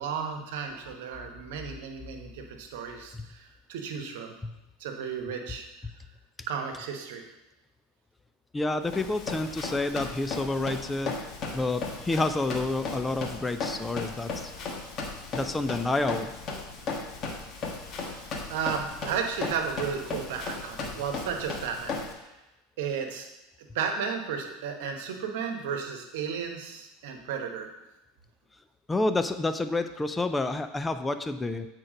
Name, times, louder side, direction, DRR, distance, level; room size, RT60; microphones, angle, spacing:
voice 1, 0.0-4.3 4.8-5.7 6.5-7.2 18.0-22.3 22.8-23.3 23.7-27.7, right 6 dB, 65° right, 4 dB, 1.2 m, -34 dB
voice 2, 8.5-11.2 11.5-14.5 15.3-16.3 28.9-31.7, left 2 dB, 15° left, 9 dB, 0.5 m, -29 dB
Run, 8.9-22.1, left 4 dB, 40° left, 1.5 m, -36 dB
8.7 x 4.5 x 5.1 m, 0.99 s
hypercardioid pair, 80°, 0 cm